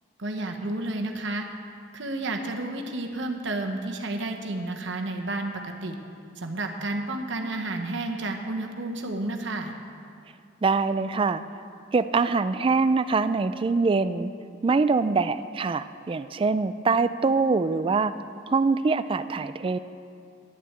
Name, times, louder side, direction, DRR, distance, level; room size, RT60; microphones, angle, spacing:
voice 1, 0.2-1.5 1.9-5.9 6.4-9.7, right 2 dB, 65° right, 3 dB, 1.1 m, -31 dB
voice 2, 10.6-11.4 11.9-14.3 14.6-18.1 18.5-19.8, right 4 dB, 25° right, 12 dB, 0.3 m, -24 dB
11.0 x 7.5 x 8.1 m, 2.4 s
head